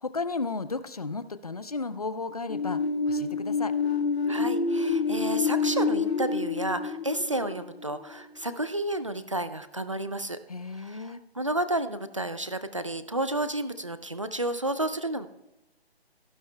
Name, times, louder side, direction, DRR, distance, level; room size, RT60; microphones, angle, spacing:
voice 1, 0.0-3.7 10.5-11.2, left 3 dB, 35° left, 13 dB, 0.4 m, -34 dB
sound 1, 2.5-8.2, left 4 dB, 75° left, 1.8 m, -28 dB
voice 2, 4.3-10.4 10.8-15.3, right 1 dB, 30° right, 12 dB, 0.4 m, -31 dB
17.0 x 9.2 x 2.2 m, 0.97 s
hypercardioid pair, 170°, 32 cm